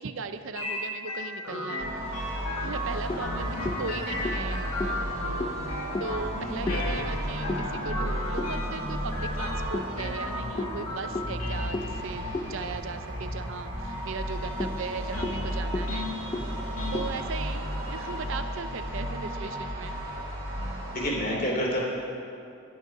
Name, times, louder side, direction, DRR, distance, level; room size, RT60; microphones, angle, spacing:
voice 1, 0.0-1.9 2.3-5.0 6.0-16.1 16.9-20.0, right 4 dB, 60° right, 9 dB, 0.5 m, -38 dB
sound 1, 0.6-19.2, left 1 dB, 90° left, 1.7 m, -37 dB
sound 2, 1.8-21.1, equal, 45° right, 2.9 m, -34 dB
sound 3, 2.6-9.1 9.7-13.6 13.9-14.0 14.4-18.0, left 1 dB, 20° left, 0.4 m, -37 dB
voice 2, 6.2-6.7 20.9-21.8, equal, 40° left, -2 dB, 2.9 m, -29 dB
11.5 x 10.5 x 5.9 m, 2.6 s
head